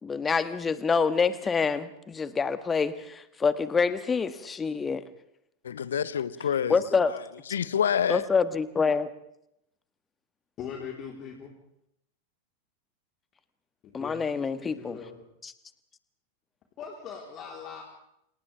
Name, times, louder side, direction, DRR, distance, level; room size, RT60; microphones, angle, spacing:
voice 1, 0.0-5.0 6.7-7.1 8.1-9.1 13.9-15.0 15.4-15.5, left 5 dB, 15° left, 1.5 m, -26 dB
voice 2, 5.6-6.8 7.1-7.2 7.5-8.3, left 8 dB, 65° left, 1.1 m, -27 dB
voice 3, 10.6-11.5 14.0-15.2 16.8-17.8, left 7 dB, 30° left, 3.9 m, -40 dB
29.5 x 27.5 x 3.5 m
figure-of-eight pair, 90°, 0 cm